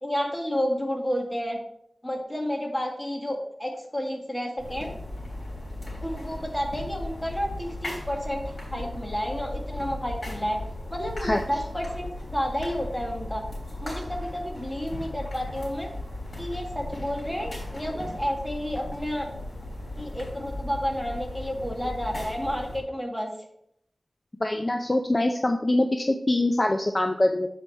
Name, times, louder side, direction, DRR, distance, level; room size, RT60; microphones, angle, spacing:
voice 1, 0.0-1.6 2.0-4.9 6.0-10.6 10.9-13.4 13.8-15.9 16.4-19.3 20.0-23.3, equal, 10° left, 0 dB, 1.7 m, -31 dB
sound 1, 4.6-22.8, left 1 dB, 50° left, 3.2 m, -37 dB
voice 2, 24.4-27.5, left 1 dB, 30° left, 4 dB, 0.6 m, -24 dB
7.7 x 5.0 x 4.3 m, 0.72 s
wide cardioid pair, 75°, 0 cm